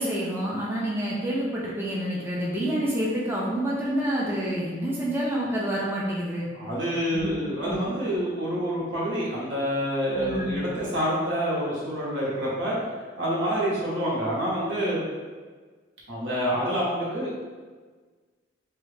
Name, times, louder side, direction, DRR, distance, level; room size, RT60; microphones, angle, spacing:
voice 1, 0.0-6.5 7.1-7.3 7.6-7.8 10.2-10.6, right 1 dB, 15° right, -5 dB, 0.4 m, -28 dB
voice 2, 6.5-12.8 13.2-15.0 16.1-17.4, equal, 75° right, -6 dB, 1.1 m, -27 dB
3.2 x 2.3 x 3.2 m, 1.4 s
head